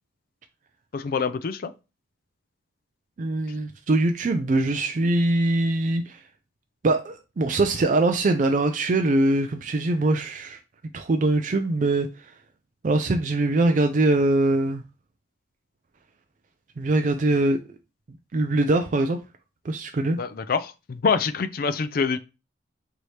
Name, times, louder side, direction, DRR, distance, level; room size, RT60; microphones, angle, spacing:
voice 1, 0.9-1.7 20.2-22.2, left 5 dB, 50° left, 0.4 m, -25 dB
voice 2, 3.2-6.2 6.8-10.6 10.9-12.1 12.8-14.8 16.8-17.6 18.3-19.2 19.6-20.2, right 2 dB, 45° right, 0.4 m, -22 dB
4.7 x 2.8 x 3.2 m
head